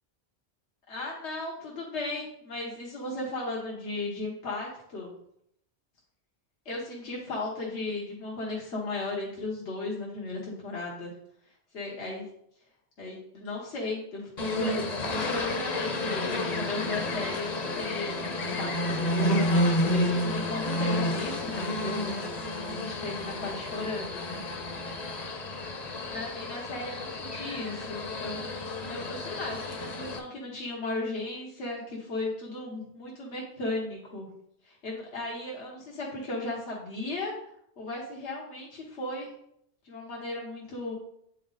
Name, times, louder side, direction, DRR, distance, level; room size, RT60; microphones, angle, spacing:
voice 1, 0.9-5.1 6.6-11.1 11.7-12.2 13.0-14.8 15.1-22.1 22.7-24.6 26.1-34.3 34.6-37.3 37.8-39.3 39.8-40.9, left 2 dB, 85° left, -3 dB, 1.5 m, -36 dB
sound 1, 14.4-30.2, left 1 dB, 40° left, 0.8 m, -30 dB
8.4 x 4.0 x 3.9 m, 0.73 s
omnidirectional pair, 1.1 m